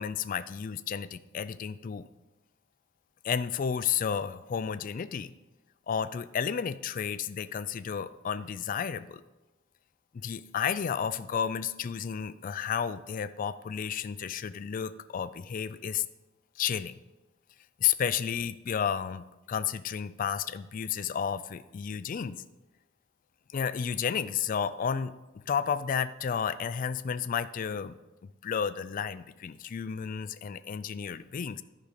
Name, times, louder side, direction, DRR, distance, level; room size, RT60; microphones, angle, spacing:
voice 1, 0.0-2.1 3.2-5.3 5.9-9.2 10.1-16.0 16.6-16.9 17.8-22.4 23.5-25.1 25.5-27.9 28.4-31.6, left 7 dB, 40° left, 14 dB, 0.3 m, -32 dB
11.0 x 5.1 x 5.1 m, 1.1 s
head